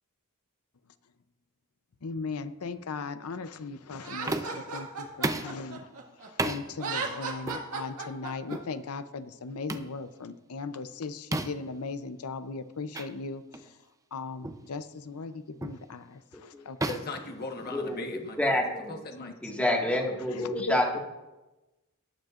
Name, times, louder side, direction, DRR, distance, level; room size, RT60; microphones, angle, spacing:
voice 1, 2.0-5.9 6.2-13.8 14.1-16.9 19.2-19.3 20.3-20.4 20.7-21.0, left 4 dB, 75° left, 12 dB, 0.7 m, -38 dB
Laughter, 4.0-6.3 6.7-8.6, right 4 dB, 80° right, 1.9 m, -35 dB
sound 1, 4.3-4.7 5.2-5.6 6.4-6.6 7.5-7.7 8.5-8.7 9.7-9.9 11.3-11.7 12.9-13.1 13.5-13.7 14.4-14.7 15.6-15.9 16.8-18.0, right 2 dB, 15° right, 0.6 m, -33 dB
voice 2, 16.3-16.7 17.7-18.9 19.4-21.0, left 1 dB, 5° left, -1 dB, 1.8 m, -28 dB
voice 3, 16.8-18.6 18.9-19.3, left 3 dB, 45° left, 4 dB, 1.2 m, -39 dB
19.0 x 9.1 x 2.5 m, 1.1 s
head